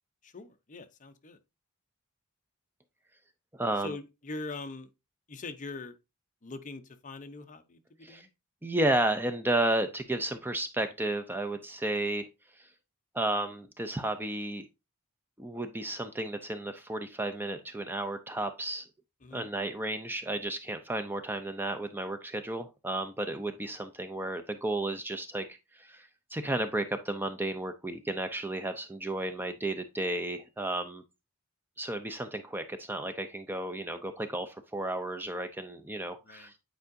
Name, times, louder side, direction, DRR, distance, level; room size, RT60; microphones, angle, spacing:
voice 1, 0.2-1.4 3.8-4.9 5.3-6.0 6.4-8.3 19.2-19.5 36.2-36.5, left 3 dB, 35° left, 0.7 m, -42 dB
voice 2, 3.6-3.9 8.0-8.3 8.6-12.3 12.6-12.7 13.1-14.6 15.4-18.9 19.3-25.4 25.7-31.0 31.8-36.5, right 1 dB, 10° right, 0.4 m, -33 dB
9.1 x 4.7 x 2.6 m
head